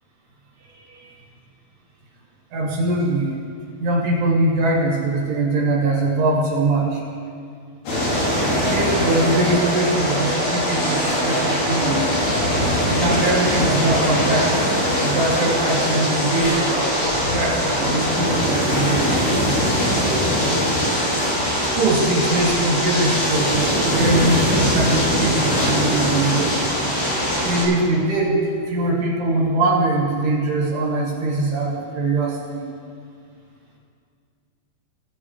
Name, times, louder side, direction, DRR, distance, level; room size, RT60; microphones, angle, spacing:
voice 1, 0.7-1.1 2.5-3.3 3.8-7.0 8.7-12.1 12.9-17.0 17.3-19.7 21.6-26.7 27.4-32.7, right 2 dB, 90° right, -4 dB, 4.0 m, -22 dB
sound 1, 7.9-27.7, equal, 70° left, 4.1 m, -21 dB
19.0 x 8.9 x 3.3 m, 2.3 s
omnidirectional pair, 4.5 m